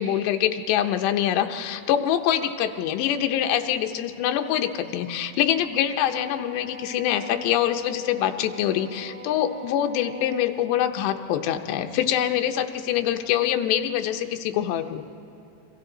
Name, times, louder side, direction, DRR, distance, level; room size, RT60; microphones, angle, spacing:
voice 1, 0.0-15.0, left 10 dB, 80° left, 6 dB, 3.1 m, -24 dB
Wind instrument woodwind instrument, 6.0-10.5, left 1 dB, 35° right, 1.9 m, -43 dB
29.0 x 24.0 x 3.9 m, 2.9 s
omnidirectional pair, 5.0 m